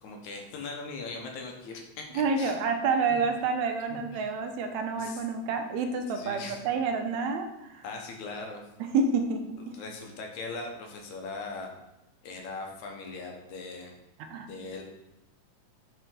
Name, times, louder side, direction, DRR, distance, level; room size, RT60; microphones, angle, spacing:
voice 1, 0.0-2.6 3.1-3.2 3.9-4.3 5.0-5.2 6.1-6.6 7.8-8.6 9.6-11.7 12.2-13.9 14.3-14.8, left 3 dB, 85° left, 1 dB, 2.3 m, -40 dB
voice 2, 2.1-7.8 8.8-9.6 14.3-14.5, right 4 dB, 80° right, 6 dB, 2.0 m, -28 dB
5.6 x 5.6 x 3.7 m, 0.92 s
omnidirectional pair, 3.4 m